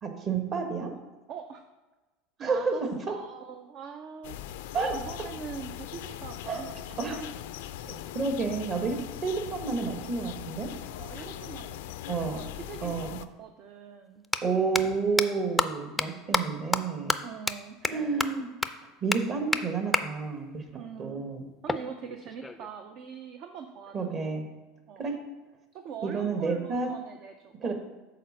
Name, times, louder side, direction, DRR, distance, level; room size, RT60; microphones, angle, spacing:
voice 1, 0.0-0.9 2.4-2.7 4.7-4.9 6.4-6.6 7.0-7.2 7.8-10.7 11.2-11.3 12.1-12.4 12.8-13.2 14.4-17.1 17.8-18.5 19.0-20.6 21.0-21.4 23.9-24.4 25.0-25.2 26.0-26.9 27.6-27.7, right 4 dB, 40° right, 4 dB, 1.4 m, -30 dB
voice 2, 1.3-1.6 2.4-2.8 3.1-4.4 4.9-7.2 11.0-13.1 13.4-14.2 17.2-17.8 20.7-21.3 21.6-24.1 24.9-25.0 25.7-27.7, right 7 dB, 55° right, 6 dB, 0.6 m, -43 dB
sound 1, 4.2-13.3, left 11 dB, 75° left, 0.4 m, -40 dB
sound 2, 14.2-14.4 14.7-14.8 15.2-15.3 15.6-15.7 16.0-16.1 16.3-16.4 16.7-16.8 17.1-17.2 17.5-17.6 17.8-17.9 18.2-18.3 18.6-18.7 19.1-19.2 19.5-19.6 19.9-20.0 21.7-22.7, left 3 dB, 10° left, 0.4 m, -27 dB
6.6 x 4.3 x 6.5 m, 1.2 s
hypercardioid pair, 95°, 0 cm